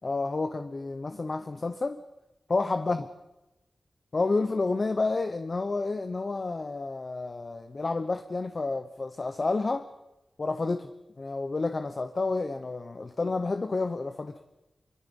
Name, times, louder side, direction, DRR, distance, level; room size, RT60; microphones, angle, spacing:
voice 1, 0.0-2.0 2.5-3.1 4.1-9.9 10.4-10.9 11.2-14.4, left 3 dB, 40° left, 10 dB, 0.9 m, -30 dB
26.0 x 24.0 x 5.4 m, 1.0 s
wide cardioid pair, 130°, 0 cm